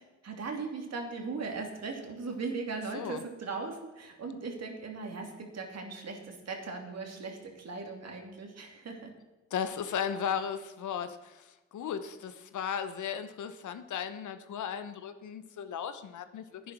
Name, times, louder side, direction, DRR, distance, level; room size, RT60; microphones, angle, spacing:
voice 1, 0.2-9.1, right 4 dB, 55° right, 3 dB, 2.9 m, -38 dB
voice 2, 9.5-16.7, left 8 dB, 70° left, 10 dB, 1.1 m, -36 dB
10.5 x 9.7 x 6.2 m, 1.2 s
supercardioid pair, 55°, 31 cm